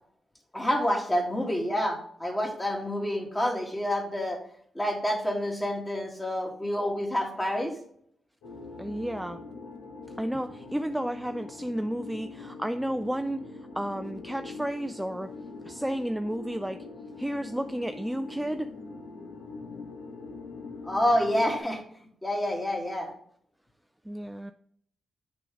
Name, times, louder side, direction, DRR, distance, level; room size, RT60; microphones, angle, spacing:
voice 1, 0.5-4.4 4.7-7.7 20.8-21.8 22.2-23.1, equal, 20° left, 0 dB, 2.2 m, -28 dB
sound 1, 8.4-21.6, left 3 dB, 85° left, 1.4 m, -43 dB
voice 2, 8.8-9.4 10.2-15.3 15.6-16.9 17.2-18.7 24.1-24.5, equal, 5° right, 8 dB, 0.4 m, -32 dB
6.8 x 5.0 x 3.5 m, 0.64 s
cardioid pair, 60°, 0 cm